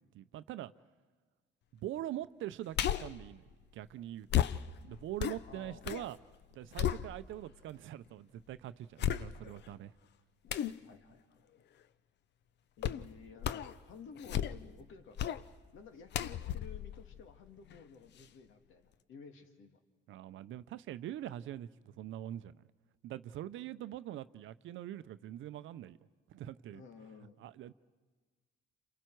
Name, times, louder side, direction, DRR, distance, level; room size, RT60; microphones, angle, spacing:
voice 1, 0.1-0.7 1.7-3.4 3.7-4.3 4.8-6.2 6.5-9.9 20.1-22.5 23.0-26.0 26.3-26.8 27.4-27.7, right 12 dB, 70° right, 14 dB, 0.6 m, -43 dB
sound 1, 2.7-3.2 4.3-6.1 6.4-7.5 8.1-8.2 9.0-9.7 10.5-10.8 12.8-13.1 13.4-13.8 14.2-14.8 15.2-15.4 16.1-17.8 18.2-18.3, left 10 dB, 55° left, 0.6 m, -34 dB
voice 2, 5.5-6.0 10.8-11.5 12.8-15.4 15.7-19.8 26.7-27.4, left 5 dB, 70° left, 6 dB, 2.0 m, -53 dB
29.5 x 27.5 x 4.6 m, 1.4 s
cardioid pair, 110°, 21 cm